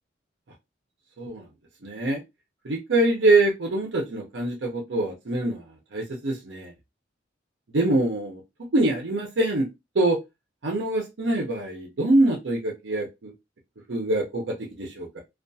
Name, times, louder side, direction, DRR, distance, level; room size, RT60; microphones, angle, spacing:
voice 1, 1.8-2.2 2.6-5.6 5.9-6.7 7.7-8.4 8.7-9.7 9.9-10.2 10.6-13.3 13.9-15.2, right 2 dB, 75° right, 0 dB, 0.7 m, -24 dB
2.4 x 2.3 x 2.6 m, 0.21 s
head